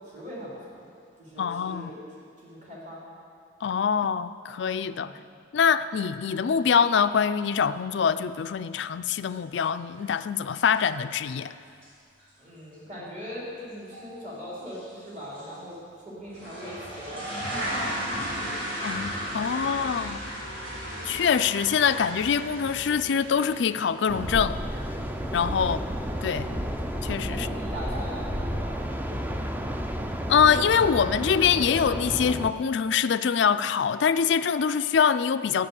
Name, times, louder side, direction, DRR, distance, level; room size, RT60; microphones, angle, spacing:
voice 1, 0.1-0.8 1.2-2.0 2.4-3.0 4.9-5.1 12.4-15.7 16.0-18.9 19.2-19.9 21.0-21.2 25.6-25.8 27.3-29.4, equal, 35° right, -6 dB, 3.3 m, -41 dB
voice 2, 1.4-1.9 3.6-5.1 5.5-11.5 18.8-20.2 21.0-24.6 25.3-25.8 26.2-26.5 27.0-27.5 30.3-35.7, left 7 dB, 60° left, 12 dB, 0.4 m, -24 dB
sound 1, 10.0-10.1 10.4-10.9 11.2-11.3 11.8-11.9 12.2-12.3 13.9-14.1 14.7-14.9 15.3-15.4 16.3-27.5, equal, 65° right, 3.8 m, -36 dB
sound 2, 24.1-32.5, equal, 10° right, 0.5 m, -31 dB
13.0 x 9.5 x 7.0 m, 2.3 s
head